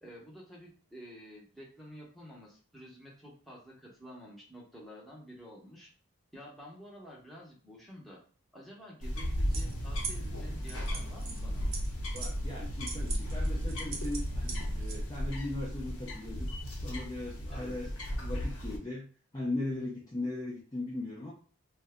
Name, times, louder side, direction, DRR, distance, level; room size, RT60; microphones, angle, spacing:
voice 1, 0.0-5.9 6.3-8.2 8.5-11.7 17.5-17.8, equal, ahead, -5 dB, 0.8 m, -50 dB
sound 1, 9.0-18.8, equal, 80° left, 0.9 m, -35 dB
sound 2, 9.5-15.0, right 3 dB, 75° right, 0.8 m, -41 dB
voice 2, 12.1-16.5 16.8-17.9 18.2-19.1 19.3-21.3, left 2 dB, 15° left, -5 dB, 0.4 m, -38 dB
2.6 x 2.2 x 3.5 m, 0.41 s
head